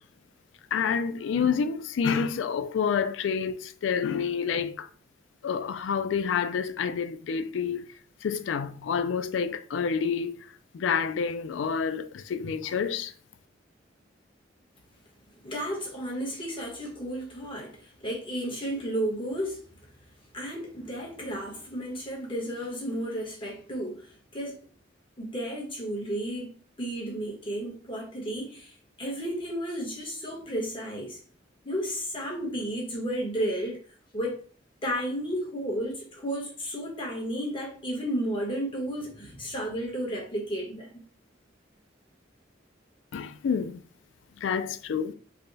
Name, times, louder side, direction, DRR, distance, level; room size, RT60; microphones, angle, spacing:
voice 1, 0.7-4.9 5.4-7.9 8.2-10.4 10.7-13.1 43.1-43.8 44.4-45.1, left 6 dB, 80° left, 0.3 m, -28 dB
voice 2, 15.4-19.6 20.3-24.7 25.2-31.2 31.6-33.8 34.1-34.4 34.8-41.0, equal, 30° left, 1.1 m, -33 dB
3.4 x 2.2 x 3.9 m
head